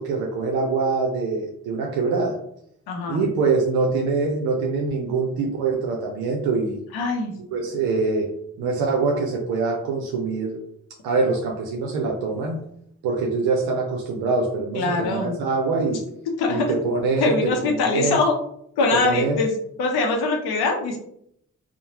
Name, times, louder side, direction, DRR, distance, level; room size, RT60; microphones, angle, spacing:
voice 1, 0.0-2.4 3.1-6.8 7.5-8.3 8.6-10.6 11.0-12.6 13.0-16.0 16.5-18.2 18.9-19.4, right 4 dB, 85° right, 0 dB, 0.5 m, -24 dB
voice 2, 2.9-3.3 6.9-7.3 14.7-15.4 16.4-16.7 17.2-18.3 18.8-19.5 19.8-21.0, left 3 dB, 80° left, 2 dB, 0.6 m, -22 dB
3.1 x 2.0 x 2.8 m, 0.72 s
supercardioid pair, 45°, 37 cm